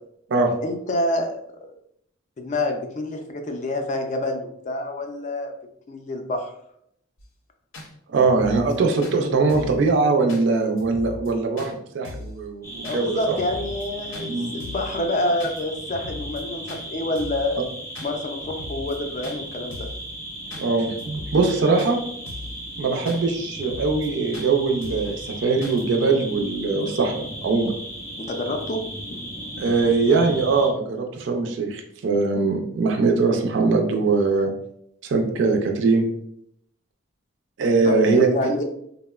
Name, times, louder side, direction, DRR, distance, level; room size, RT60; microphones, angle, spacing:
voice 1, 0.6-1.7 2.4-5.5 5.9-6.5 12.8-17.6 18.0-19.9 28.2-28.8 37.8-38.6, left 1 dB, 40° left, 4 dB, 0.3 m, -27 dB
sound 1, 7.2-7.3 7.7-7.9 8.2-8.8 9.0-9.2 9.5-9.8 10.3-10.4 10.8-11.3 11.6-11.7 12.0-12.4 12.8-13.0 13.3-13.9 14.1-14.3 14.6-14.9 15.4-15.6 15.9-16.4 16.7-16.8 17.2-17.5 18.0-18.1 18.4-19.0 19.2-19.4 19.7-20.0 20.5-20.7 21.0-21.5 21.8-21.9 22.3-22.6 23.1-23.2 23.5-24.1 24.3-24.5 24.8-25.1 25.6-25.8, left 2 dB, 80° left, 0.6 m, -38 dB
voice 2, 8.1-13.4 14.2-14.5 20.6-22.0 22.8-27.7 29.6-34.5 35.0-36.0 37.6-38.3, right 4 dB, 65° right, 3 dB, 0.4 m, -21 dB
sound 2, 12.6-30.7, equal, 15° left, 0.7 m, -36 dB
3.5 x 2.0 x 2.2 m, 0.72 s
head